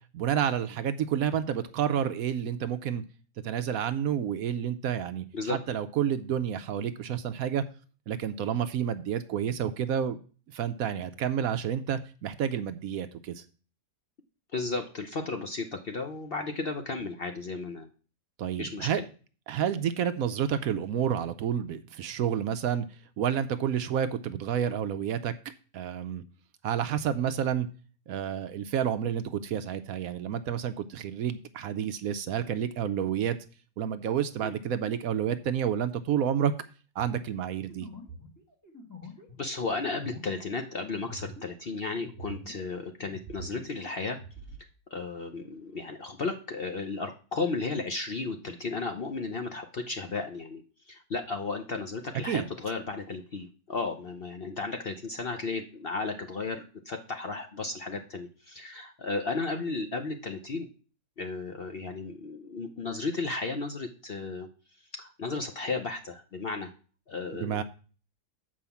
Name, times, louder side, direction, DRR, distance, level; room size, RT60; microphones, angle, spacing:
voice 1, 0.1-3.0 3.4-7.6 8.1-10.2 10.5-13.4 18.4-19.0 19.5-22.9 23.2-25.3 25.7-26.2 26.6-27.7 28.1-33.4 33.8-36.5 37.0-37.9 52.2-52.5 67.3-67.6, right 9 dB, 70° right, 11 dB, 1.0 m, -29 dB
voice 2, 14.5-17.9 18.6-19.0 34.4-34.5 39.4-44.2 44.9-60.7 61.2-64.5 65.0-66.7 67.1-67.6, left 3 dB, 50° left, 5 dB, 0.7 m, -34 dB
sound 1, 37.3-42.7 43.0-44.6, equal, 10° left, 2.0 m, -46 dB
7.4 x 4.8 x 7.0 m, 0.38 s
omnidirectional pair, 1.7 m